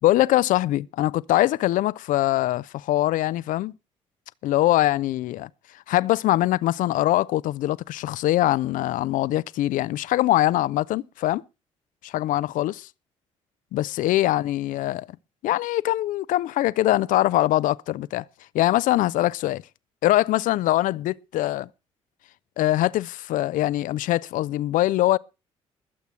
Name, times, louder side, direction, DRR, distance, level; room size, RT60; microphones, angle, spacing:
voice 1, 0.0-3.7 4.4-5.5 5.9-11.4 12.0-12.9 13.7-15.1 15.4-18.2 18.5-19.6 20.0-21.7 22.6-25.2, left 15 dB, 55° left, 0.6 m, -22 dB
21.5 x 8.2 x 4.3 m
figure-of-eight pair, 45°, 16 cm